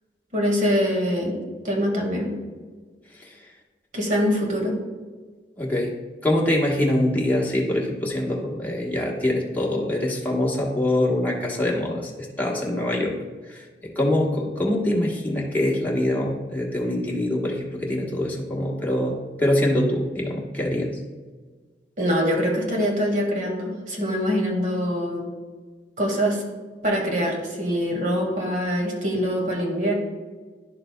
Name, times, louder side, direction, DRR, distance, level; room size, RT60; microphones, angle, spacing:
voice 1, 0.3-1.4 1.6-2.3 3.9-4.8 22.0-25.2 26.0-26.4 26.8-29.9, equal, 45° right, 0 dB, 1.8 m, -24 dB
voice 2, 5.6-5.9 6.2-13.1 13.5-13.6 13.9-21.0, left 1 dB, 10° left, -3 dB, 1.1 m, -24 dB
11.0 x 6.6 x 2.2 m, 1.4 s
head